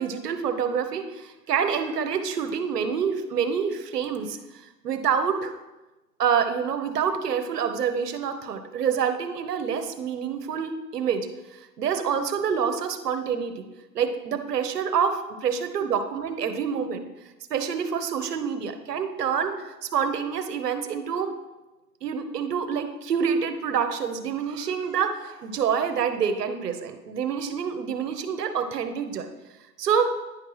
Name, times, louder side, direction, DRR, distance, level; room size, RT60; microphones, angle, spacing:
voice 1, 0.0-5.5 6.2-13.6 13.9-17.0 17.5-21.3 22.0-29.3 29.8-30.1, right 7 dB, 75° right, 8 dB, 1.0 m, -27 dB
10.0 x 4.6 x 3.1 m, 1.1 s
hypercardioid pair, 135°, 48 cm